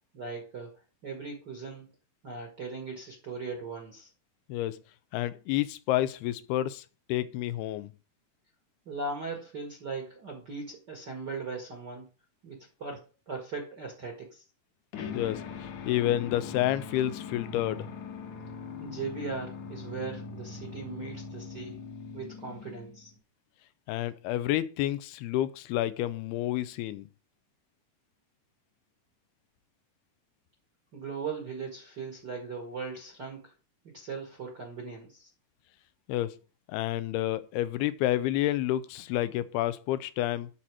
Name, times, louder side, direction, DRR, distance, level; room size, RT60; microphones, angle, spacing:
voice 1, 0.1-1.9 2.2-4.1 8.8-12.1 12.4-13.0 13.3-14.4 18.8-21.8 22.1-23.1 30.9-33.5 33.8-35.3, right 4 dB, 45° right, 1.3 m, -39 dB
voice 2, 5.1-7.9 15.1-17.9 23.9-27.1 36.1-36.4 36.7-40.5, left 13 dB, 85° left, 2.6 m, -29 dB
sound 1, 14.9-23.2, left 5 dB, 60° left, 2.1 m, -41 dB
11.5 x 4.3 x 6.2 m
omnidirectional pair, 4.5 m